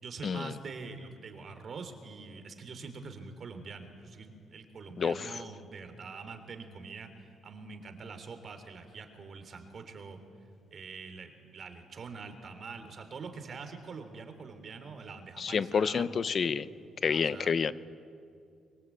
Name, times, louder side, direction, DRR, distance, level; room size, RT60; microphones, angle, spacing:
voice 1, 0.0-10.2 10.7-16.3 17.1-17.5, right 4 dB, 50° right, 8 dB, 3.4 m, -45 dB
voice 2, 5.0-5.3 15.4-16.7 17.0-17.7, left 6 dB, 45° left, 15 dB, 0.9 m, -29 dB
24.0 x 22.5 x 8.5 m, 2.4 s
cardioid pair, 90°, 0 cm